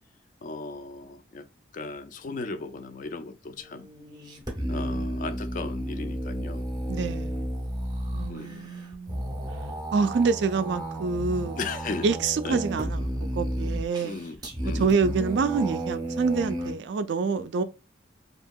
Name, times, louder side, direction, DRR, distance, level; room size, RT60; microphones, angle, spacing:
voice 1, 0.4-1.5 1.7-3.9 4.7-6.6 8.3-8.7 11.6-12.1 12.4-12.6 14.0-15.0, left 3 dB, 45° left, 0.3 m, -36 dB
sound 1, 3.5-16.7, right 1 dB, 20° right, 0.6 m, -32 dB
voice 2, 4.7-5.2 6.9-7.4 8.1-9.2 9.9-11.6 12.0-14.2 14.7-17.6, right 5 dB, 60° right, 0.3 m, -27 dB
2.8 x 2.7 x 2.2 m
head